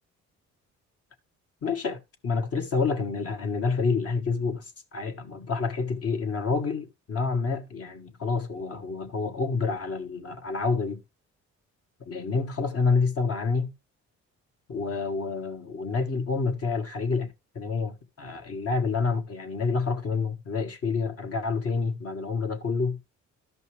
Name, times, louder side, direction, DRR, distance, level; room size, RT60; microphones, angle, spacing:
voice 1, 1.6-11.0 12.1-13.7 14.7-23.0, left 4 dB, 50° left, 1.5 m, -28 dB
12.5 x 5.4 x 3.3 m
cardioid pair, 90°, 30 cm